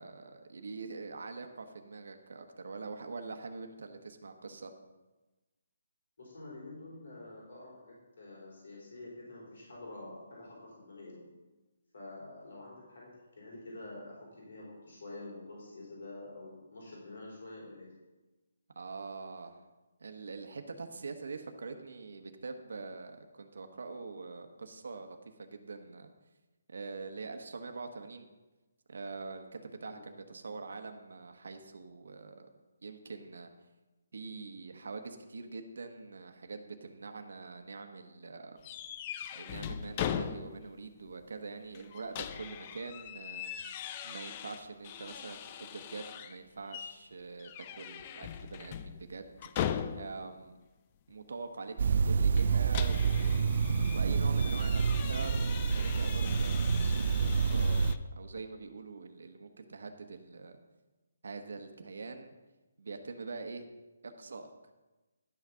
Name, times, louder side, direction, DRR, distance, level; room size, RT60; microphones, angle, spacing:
voice 1, 0.0-4.7 18.7-19.6 20.0-26.1 26.7-28.3 28.9-32.5 32.8-33.5 34.1-38.6 39.3-43.5 44.0-47.5 47.8-49.3 49.9-50.5 51.1-53.5 53.9-60.6 61.2-62.3 62.8-63.7 64.0-64.5, right 4 dB, 75° right, 6 dB, 1.1 m, -44 dB
voice 2, 6.2-11.2 11.9-13.1 13.4-17.9 29.8-30.0, left 2 dB, 65° left, -4 dB, 4.1 m, -47 dB
sound 1, 38.6-40.8 41.1-41.2 41.7-46.4 46.7-47.0 47.4-50.3 52.4-58.0, left 9 dB, 25° left, 0.4 m, -40 dB
sound 2, 51.8-57.9, right 5 dB, 50° right, 0.4 m, -28 dB
11.5 x 6.1 x 5.7 m, 1.1 s
hypercardioid pair, 175°, 0 cm